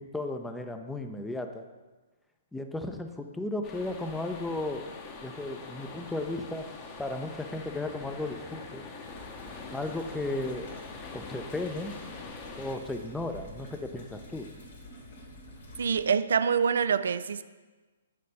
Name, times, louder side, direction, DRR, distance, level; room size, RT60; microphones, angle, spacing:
voice 1, 0.0-1.6 2.5-4.8 5.2-6.6 7.0-8.8 9.7-10.7 11.1-12.0 12.6-14.5, left 2 dB, 5° left, 0.5 m, -35 dB
sound 1, 3.6-12.8, left 4 dB, 30° left, 0.9 m, -44 dB
sound 2, 9.0-16.0, left 1 dB, 65° left, 2.1 m, -48 dB
voice 2, 15.8-17.4, right 6 dB, 70° right, 0.3 m, -25 dB
6.6 x 4.1 x 5.4 m
hypercardioid pair, 130°, 0 cm